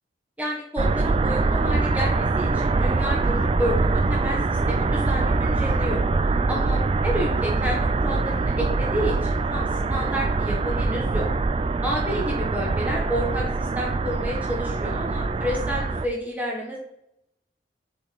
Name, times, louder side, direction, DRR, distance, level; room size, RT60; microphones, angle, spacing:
voice 1, 0.4-6.0 6.5-11.3 11.8-16.8, equal, 10° right, -2 dB, 1.2 m, -30 dB
sound 1, 0.8-16.1, right 3 dB, 30° right, 0.3 m, -23 dB
7.2 x 5.2 x 4.0 m, 0.79 s
head